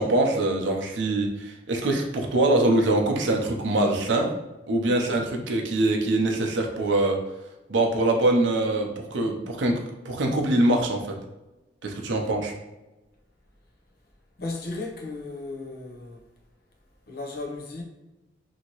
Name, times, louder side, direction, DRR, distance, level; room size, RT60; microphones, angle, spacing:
voice 1, 0.0-4.3 4.7-7.2 7.7-9.8 10.0-11.1 11.8-12.5, right 2 dB, 80° right, 0.6 m, -23 dB
voice 2, 14.4-16.2 17.1-17.8, left 2 dB, 55° left, 0.6 m, -35 dB
2.8 x 2.7 x 2.9 m
head